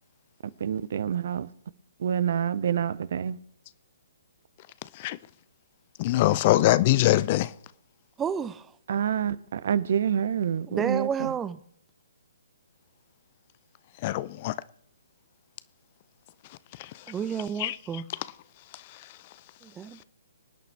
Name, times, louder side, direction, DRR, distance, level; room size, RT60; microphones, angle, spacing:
voice 1, 0.6-1.5 2.0-3.4 8.9-11.3, right 8 dB, 55° right, 0.6 m, -27 dB
voice 2, 6.0-7.5 14.0-14.5 16.8-16.9 17.6-17.8, left 15 dB, 35° left, 0.5 m, -22 dB
voice 3, 8.2-8.7 10.7-11.6 17.1-18.1 19.6-20.0, right 7 dB, 15° right, 0.6 m, -31 dB
25.5 x 9.2 x 3.4 m
figure-of-eight pair, 135°, 0 cm